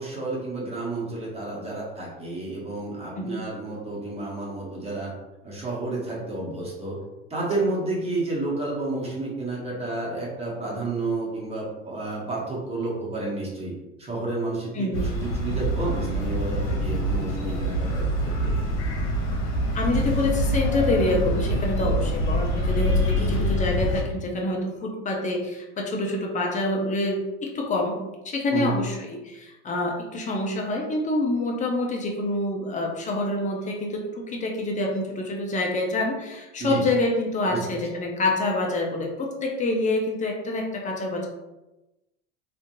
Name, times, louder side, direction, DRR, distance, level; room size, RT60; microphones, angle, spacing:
voice 1, 0.0-5.1 5.4-7.0 7.3-13.7 14.0-18.6 23.1-23.5 28.5-28.7 36.6-36.9 37.5-37.6, right 2 dB, 20° right, -5 dB, 1.1 m, -31 dB
voice 2, 14.7-15.1 19.7-28.0 28.2-41.3, left 2 dB, 25° left, 0 dB, 0.6 m, -26 dB
sound 1, 14.9-24.0, equal, 90° left, 0.8 m, -25 dB
3.1 x 2.5 x 2.6 m, 1.0 s
supercardioid pair, 115°, 33 cm